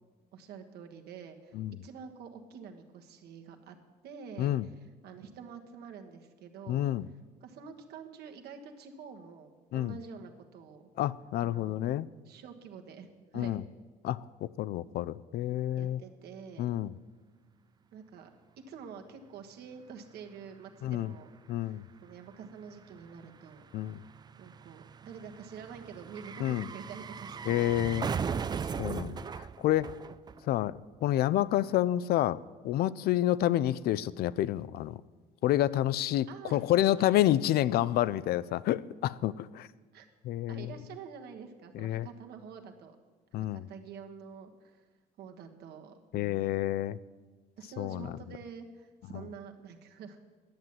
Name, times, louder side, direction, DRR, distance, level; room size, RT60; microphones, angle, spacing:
voice 1, 0.3-3.8 4.0-6.9 7.4-10.8 11.4-11.9 12.2-13.6 15.8-16.8 17.9-18.3 18.7-21.3 21.6-23.6 24.4-27.7 28.7-29.4 36.3-37.1 39.9-40.1 40.5-43.0 43.3-44.8 45.2-46.8 47.6-50.2, right 6 dB, 70° right, 5 dB, 1.4 m, -47 dB
voice 2, 6.7-7.1 9.7-10.0 11.0-12.1 13.3-13.6 14.0-16.0 16.6-16.9 20.8-21.1 21.5-21.8 23.7-24.0 26.4-26.7 27.5-28.1 28.8-29.9 30.4-32.4 32.6-35.0 35.4-39.7 40.2-40.7 41.7-42.1 43.3-43.7 46.1-47.0 47.8-48.1, left 13 dB, 70° left, 18 dB, 0.4 m, -29 dB
sound 1, 20.1-20.2 20.4-30.8 31.0-31.1, right 6 dB, 25° right, 0.3 m, -39 dB
10.5 x 7.3 x 9.4 m, 1.3 s
cardioid pair, 110°, 17 cm